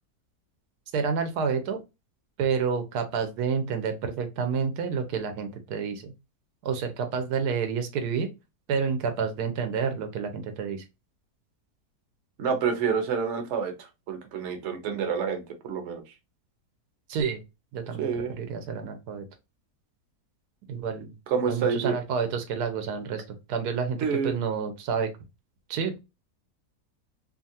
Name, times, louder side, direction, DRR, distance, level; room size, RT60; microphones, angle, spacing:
voice 1, 0.9-1.8 2.4-6.1 6.6-8.3 8.7-10.8 17.1-17.4 17.7-19.3 20.7-21.1 21.5-24.0 24.2-25.1 25.7-26.0, right 6 dB, 85° right, 7 dB, 1.1 m, -29 dB
voice 2, 12.4-16.0 18.0-18.3 21.3-22.0 24.0-24.3, right 6 dB, 55° right, 5 dB, 0.9 m, -28 dB
2.8 x 2.4 x 2.6 m, 0.25 s
omnidirectional pair, 1.6 m